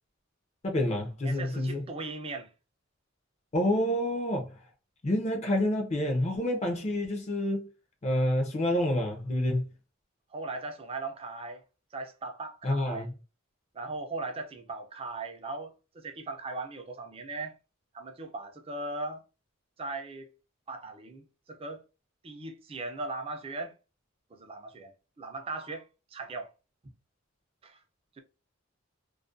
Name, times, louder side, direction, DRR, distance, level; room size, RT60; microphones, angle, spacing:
voice 1, 0.6-1.8 3.5-4.5 5.0-7.7 8.0-9.7 12.6-13.1, left 1 dB, 30° left, 0.5 m, -28 dB
voice 2, 1.2-2.5 10.3-11.6 11.9-13.1 13.7-17.6 17.9-19.2 19.8-20.3 20.7-21.8 22.2-23.7 24.3-25.8 26.1-26.5 27.6-27.8, right 3 dB, 25° right, 0.4 m, -38 dB
2.3 x 2.1 x 2.5 m
head